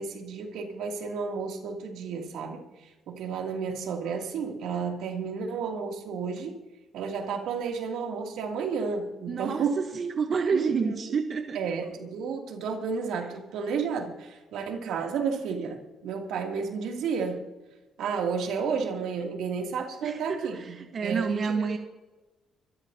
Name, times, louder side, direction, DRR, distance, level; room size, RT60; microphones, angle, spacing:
voice 1, 0.0-6.6 6.9-9.9 10.5-11.0 11.5-17.5 18.0-20.7 21.0-21.7, right 5 dB, 85° right, 1 dB, 2.8 m, -32 dB
voice 2, 9.3-11.6 20.0-21.8, right 5 dB, 50° right, 5 dB, 1.1 m, -29 dB
25.5 x 13.5 x 2.9 m, 1.1 s
cardioid pair, 90°, 0 cm